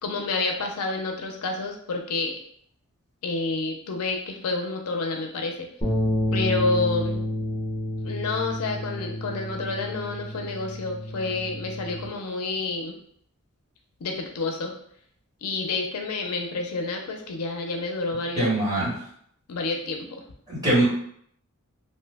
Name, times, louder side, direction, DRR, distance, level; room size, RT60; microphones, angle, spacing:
voice 1, 0.0-2.3 3.2-5.7 6.3-7.2 8.0-13.0 14.0-14.7 15.4-18.5 19.5-20.2, left 3 dB, 80° left, 2 dB, 0.5 m, -29 dB
sound 1, 5.8-12.1, equal, 20° left, 1.0 m, -29 dB
voice 2, 18.4-18.9 20.5-20.9, right 1 dB, 15° right, -8 dB, 1.3 m, -22 dB
2.7 x 2.1 x 3.3 m, 0.66 s
head